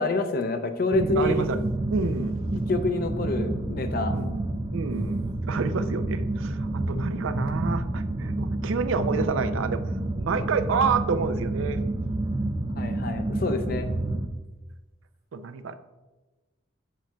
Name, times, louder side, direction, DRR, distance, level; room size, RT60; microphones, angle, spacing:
voice 1, 0.0-1.5 2.5-4.1 12.8-13.9, left 2 dB, 50° left, 8 dB, 0.5 m, -27 dB
sound 1, 0.9-14.3, right 2 dB, 20° right, 0.3 m, -29 dB
voice 2, 1.0-1.6 1.9-2.4 4.1-4.4 4.7-9.8 10.1-11.8 15.3-15.8, right 5 dB, 90° right, 11 dB, 0.4 m, -28 dB
7.4 x 7.1 x 2.3 m, 1.2 s
head